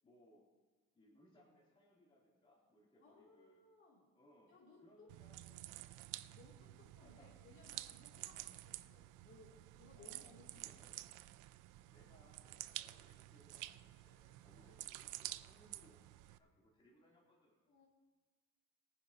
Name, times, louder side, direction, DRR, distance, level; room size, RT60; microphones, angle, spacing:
voice 1, 0.0-0.5 0.9-3.6 4.1-5.9 7.0-7.4 9.9-11.0 11.9-17.8, left 1 dB, 15° left, -5 dB, 3.1 m, -68 dB
voice 2, 3.0-4.1 4.5-5.1 5.8-5.9 6.3-10.8 14.5-14.7 17.7-17.9, left 3 dB, 40° left, -4 dB, 2.9 m, -64 dB
sound 1, 5.1-16.4, right 16 dB, 75° right, 0.5 m, -51 dB
21.5 x 10.0 x 2.9 m, 1.3 s
cardioid pair, 170°, 31 cm